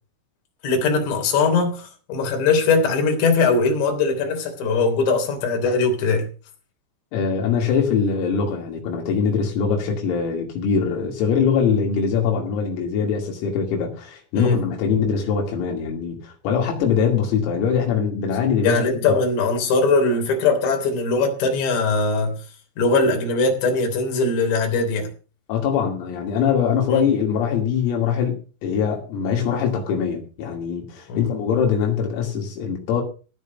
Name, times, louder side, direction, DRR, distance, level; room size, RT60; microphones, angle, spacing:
voice 1, 0.6-6.3 14.4-14.6 18.6-22.4 22.8-25.1 26.9-27.0 31.1-31.2, left 3 dB, 60° left, 5.4 m, -20 dB
voice 2, 7.1-19.0 25.5-28.4 28.6-33.0, left 6 dB, 85° left, 5.2 m, -22 dB
16.0 x 5.4 x 8.1 m
omnidirectional pair, 6.0 m